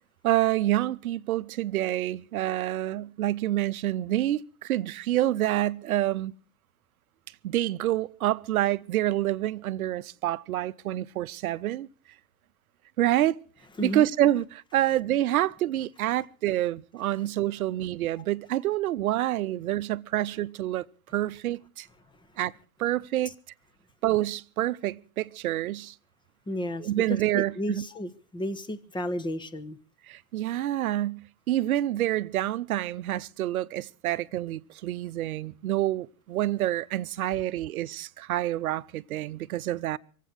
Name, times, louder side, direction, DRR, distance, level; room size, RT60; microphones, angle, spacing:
voice 1, 0.2-6.3 7.4-11.9 13.0-13.4 13.8-20.9 21.1-21.9 22.4-22.5 22.8-23.3 24.0-25.9 26.8-27.8 30.1-40.0, right 14 dB, 80° right, 0.7 m, -27 dB
voice 2, 13.8-14.1 23.2-23.3 26.5-29.8, equal, 10° left, 1.1 m, -33 dB
24.5 x 8.3 x 6.3 m
hypercardioid pair, 110°, 43 cm